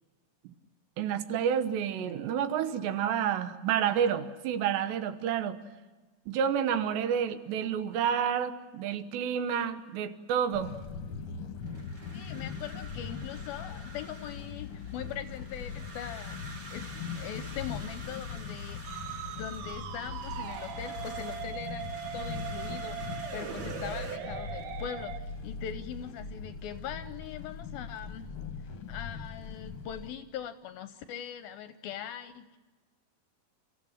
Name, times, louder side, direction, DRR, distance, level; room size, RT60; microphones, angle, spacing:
voice 1, 1.0-5.6 6.3-10.8, right 8 dB, 80° right, 10 dB, 3.3 m, -29 dB
sound 1, 10.5-30.1, left 5 dB, 50° left, 1.6 m, -41 dB
sound 2, 11.6-24.2, right 2 dB, 45° right, 1.2 m, -49 dB
voice 2, 12.1-16.4 16.7-16.9 17.1-19.0 19.3-21.9 22.1-28.3 28.9-32.6, left 9 dB, 75° left, 10 dB, 2.3 m, -41 dB
Musical instrument, 18.8-25.2, right 9 dB, 65° right, 2.2 m, -40 dB
30.0 x 15.0 x 7.3 m, 1.3 s
omnidirectional pair, 4.9 m